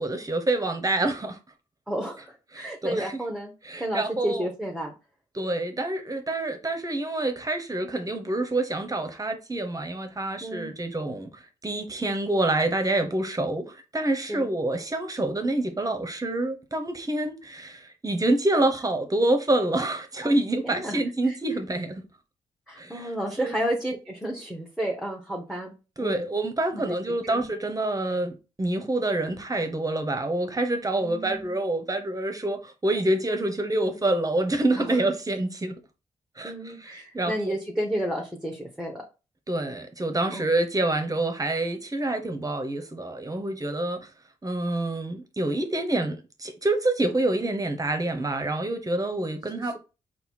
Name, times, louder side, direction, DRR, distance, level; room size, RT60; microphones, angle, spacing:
voice 1, 0.0-1.4 2.5-3.2 3.6-4.5 5.3-22.0 22.8-23.1 23.4-23.5 26.0-35.8 36.4-37.5 39.5-44.1 44.4-49.8, right 2 dB, 25° right, 0.9 m, -27 dB
voice 2, 1.9-3.5 3.8-4.9 10.4-10.7 14.3-14.5 20.2-20.3 20.6-21.4 22.7-25.7 26.0-26.2 26.7-26.9 27.3-27.5 31.0-31.6 34.7-34.9 36.4-39.0 40.3-40.5 49.6-49.7, right 1 dB, ahead, 1.1 m, -32 dB
4.2 x 2.2 x 4.2 m
hypercardioid pair, 40°, 14 cm